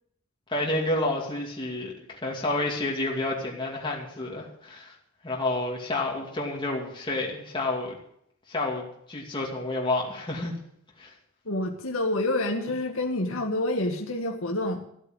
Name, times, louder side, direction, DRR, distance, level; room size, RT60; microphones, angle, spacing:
voice 1, 0.5-4.9 5.2-8.0 8.5-10.5 11.0-11.1, left 2 dB, 25° left, -2 dB, 2.5 m, -29 dB
voice 2, 11.5-14.8, left 1 dB, 70° left, 1 dB, 1.8 m, -28 dB
15.0 x 8.2 x 8.0 m, 0.71 s
head